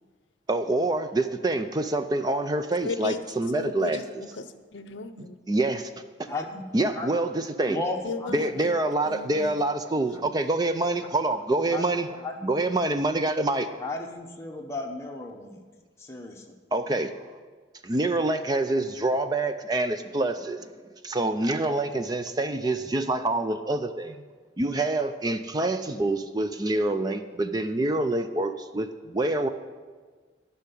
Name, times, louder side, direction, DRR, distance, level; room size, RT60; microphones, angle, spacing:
voice 1, 0.5-4.0 5.2-5.9 6.7-7.8 8.3-12.1 12.4-13.8 16.7-17.3 17.8-20.7 21.0-24.2 24.6-29.5, right 2 dB, 20° right, 9 dB, 0.4 m, -26 dB
voice 2, 2.8-3.2 3.5-5.6 6.3-6.6 8.0-8.7 9.0-9.7 10.0-10.3, left 3 dB, 75° left, 11 dB, 0.6 m, -36 dB
voice 3, 6.3-6.6 6.9-7.1 7.7-8.3 11.7-12.6 13.8-15.6 16.0-16.6, left 2 dB, 15° left, 0 dB, 1.0 m, -35 dB
12.0 x 5.7 x 8.5 m, 1.5 s
head